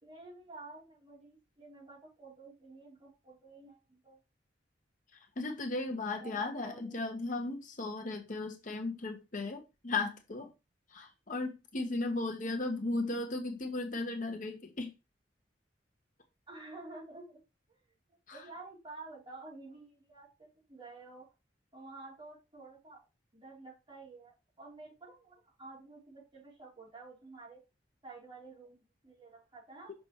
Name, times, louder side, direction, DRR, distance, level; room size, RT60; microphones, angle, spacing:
voice 1, 0.0-4.2 6.1-7.1 16.5-17.4 17.7-17.8 18.3-21.3 21.7-23.0 23.3-27.6 28.0-29.9, right 3 dB, 25° right, -5 dB, 3.5 m, -51 dB
voice 2, 5.4-10.5 10.9-14.9 18.3-18.4, left 2 dB, 45° left, 3 dB, 1.1 m, -36 dB
6.1 x 5.7 x 3.0 m, 0.26 s
head